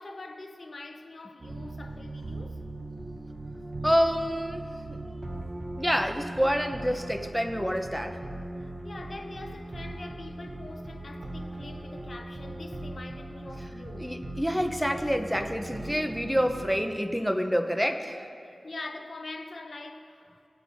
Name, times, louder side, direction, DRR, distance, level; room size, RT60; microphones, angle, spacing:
voice 1, 0.0-2.6 8.6-14.2 18.4-20.2, left 2 dB, 50° left, 0.8 m, -43 dB
sound 1, 1.4-16.8, right 1 dB, 35° right, 0.8 m, -39 dB
voice 2, 3.8-5.0 5.8-8.2 14.0-18.3, equal, ahead, 0.6 m, -27 dB
23.5 x 8.2 x 2.6 m
wide cardioid pair, 110°, 0 cm